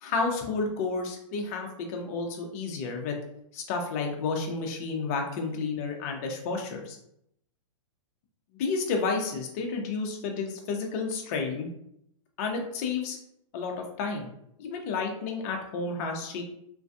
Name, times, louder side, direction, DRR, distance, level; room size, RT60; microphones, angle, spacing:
voice 1, 0.0-3.2 3.5-7.0 8.5-11.7 12.4-13.2 13.5-14.3 14.6-16.4, left 4 dB, 30° left, 2 dB, 0.4 m, -31 dB
2.5 x 2.2 x 2.6 m, 0.76 s
hypercardioid pair, 160°, 18 cm